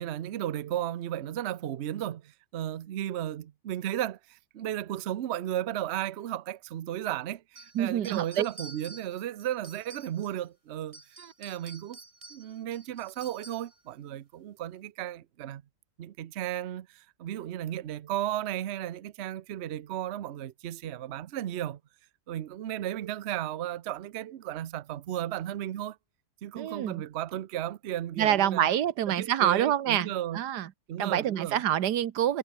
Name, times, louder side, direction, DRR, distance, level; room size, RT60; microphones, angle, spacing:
voice 1, 0.0-11.0 11.4-12.0 12.3-15.6 16.0-21.8 22.3-26.0 26.4-28.7 29.1-30.4 30.9-31.6, right 12 dB, 55° right, 0.8 m, -34 dB
sound 1, 7.6-10.5 10.8-13.8, right 2 dB, 20° right, 1.9 m, -50 dB
voice 2, 7.7-8.5 11.2-11.3 26.6-27.0 28.2-30.7 31.0-32.4, right 11 dB, 85° right, 1.5 m, -27 dB
omnidirectional pair, 1.7 m